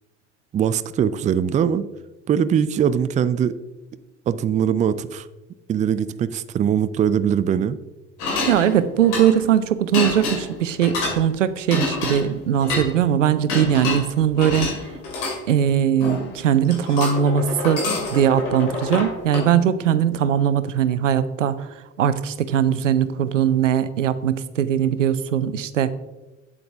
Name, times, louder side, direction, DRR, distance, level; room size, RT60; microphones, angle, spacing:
voice 1, 0.5-1.9 2.3-3.6 4.3-5.3 5.7-7.8, right 8 dB, 20° right, 15 dB, 0.4 m, -21 dB
sound 1, 8.2-9.5 9.9-11.2 11.7-12.9 13.5-15.4 16.0-16.4 16.6-19.5, left 2 dB, 60° left, 3.1 m, -27 dB
voice 2, 8.5-14.7 15.5-17.9 18.1-21.7 22.0-25.9, right 9 dB, 85° right, 14 dB, 0.6 m, -20 dB
8.8 x 7.7 x 3.5 m, 1.1 s
figure-of-eight pair, 65°, 36 cm